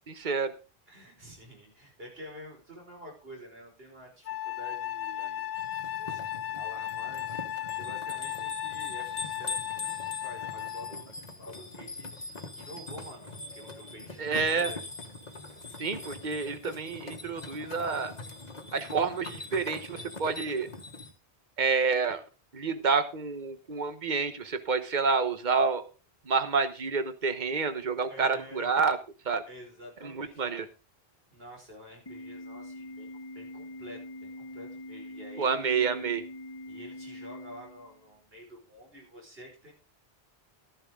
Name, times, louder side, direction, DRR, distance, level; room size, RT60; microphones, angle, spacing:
voice 1, 0.1-0.5 14.2-14.7 15.8-18.1 18.7-20.7 21.6-22.2 22.5-25.8 26.3-29.0 29.2-29.4 30.0-30.7 35.4-36.2, right 5 dB, 50° right, 10 dB, 1.3 m, -28 dB
voice 2, 0.9-7.5 7.7-14.8 28.1-28.7 29.5-30.7 31.3-35.7 36.7-39.7, equal, 70° right, 0 dB, 5.3 m, -49 dB
Wind instrument woodwind instrument, 4.3-11.0, left 11 dB, 75° left, 1.1 m, -36 dB
sound 1, 5.5-21.1, left 3 dB, 45° left, 1.5 m, -42 dB
Organ, 32.1-38.1, left 1 dB, 25° left, 1.5 m, -44 dB
13.0 x 11.0 x 3.7 m, 0.32 s
omnidirectional pair, 1.0 m